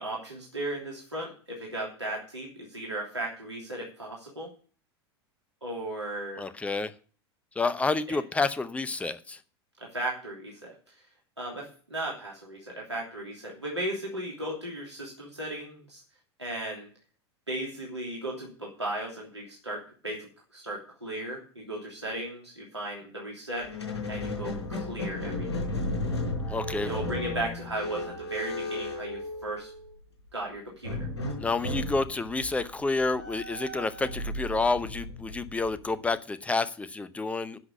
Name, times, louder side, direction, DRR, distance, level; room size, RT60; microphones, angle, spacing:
voice 1, 0.0-4.5 5.6-6.4 8.1-8.2 9.9-11.0 11.4-16.0 16.4-16.9 17.5-23.7 24.1-25.7 26.8-29.7 30.3-31.1, right 1 dB, 85° right, -3 dB, 2.9 m, -36 dB
voice 2, 6.4-6.9 7.6-9.4 26.5-26.9 31.4-37.6, left 3 dB, 10° left, 14 dB, 0.8 m, -29 dB
Squeak, 23.5-29.9 30.8-36.0, left 2 dB, 70° left, 4.8 m, -34 dB
11.0 x 6.1 x 7.2 m, 0.40 s
figure-of-eight pair, 80°, 14 cm